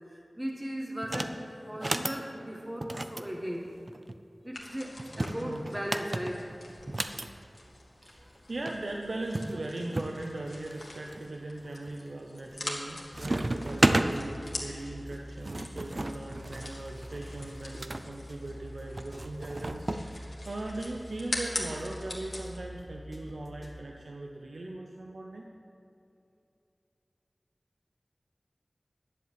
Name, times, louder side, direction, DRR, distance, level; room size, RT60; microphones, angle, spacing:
voice 1, 0.0-3.7 4.4-6.6, equal, 15° right, 0 dB, 1.4 m, -37 dB
sound 1, 1.0-1.4 1.7-2.2 2.8-4.2 5.0-7.3 8.4-8.5 8.6-8.8 9.3-10.1 10.7-11.2 11.7-12.1 12.4-12.9 13.1-14.1 15.1-18.0 19.0-20.0, right 2 dB, 45° right, 0.6 m, -32 dB
sound 2, 4.5-22.6, left 2 dB, 75° left, 1.9 m, -44 dB
voice 2, 8.0-25.4, right 2 dB, 85° right, 0 dB, 0.8 m, -39 dB
sound 3, 13.1-23.8, equal, 25° left, 1.6 m, -46 dB
11.5 x 7.6 x 7.6 m, 2.7 s
wide cardioid pair, 60°, 0 cm